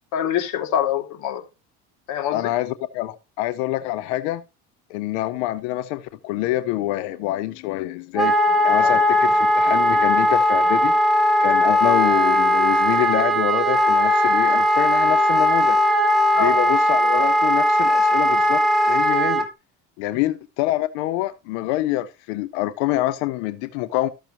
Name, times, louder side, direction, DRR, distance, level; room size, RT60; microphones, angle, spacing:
voice 1, 0.1-1.4 2.1-2.5 8.8-9.0 16.3-16.5, left 9 dB, 65° left, 2.3 m, -25 dB
voice 2, 2.3-4.4 4.9-8.3 8.6-10.9 11.4-15.8 16.4-19.5 20.0-24.1, left 15 dB, 90° left, 0.8 m, -26 dB
Wind instrument woodwind instrument, 8.2-19.5, left 1 dB, ahead, 2.5 m, -18 dB
13.5 x 6.7 x 2.9 m
cardioid pair, 120°, 33 cm